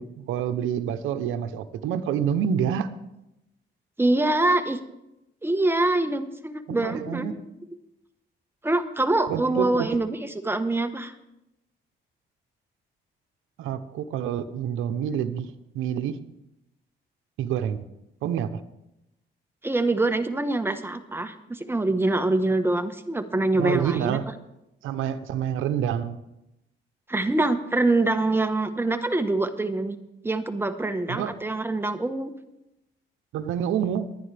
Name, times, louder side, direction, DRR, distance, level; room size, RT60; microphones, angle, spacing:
voice 1, 0.0-2.9 6.7-7.4 9.3-10.0 13.6-15.5 15.7-16.2 17.4-17.8 18.2-18.5 23.5-24.3 24.8-26.2 31.1-31.4 33.3-34.2, right 9 dB, 90° right, 10 dB, 0.8 m, -27 dB
voice 2, 4.0-4.8 5.4-7.4 8.6-11.1 19.6-24.2 27.1-30.0 30.2-32.3, right 2 dB, 10° right, 8 dB, 1.2 m, -25 dB
23.0 x 9.7 x 3.4 m, 0.89 s
cardioid pair, 90°, 20 cm